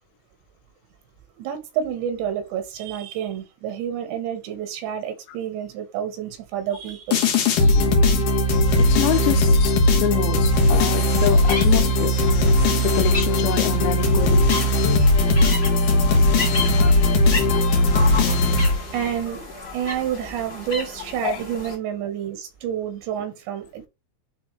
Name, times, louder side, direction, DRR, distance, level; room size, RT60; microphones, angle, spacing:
voice 1, 1.4-7.4 18.9-23.9, right 9 dB, 85° right, 3.7 m, -29 dB
sound 1, 7.1-19.2, left 1 dB, 60° left, 2.8 m, -18 dB
voice 2, 7.7-8.2 8.8-12.1 12.8-14.5 21.2-21.4, left 14 dB, 85° left, 3.1 m, -27 dB
sound 2, 10.8-21.7, left 2 dB, 25° left, 1.5 m, -34 dB
9.9 x 3.5 x 3.4 m
omnidirectional pair, 5.0 m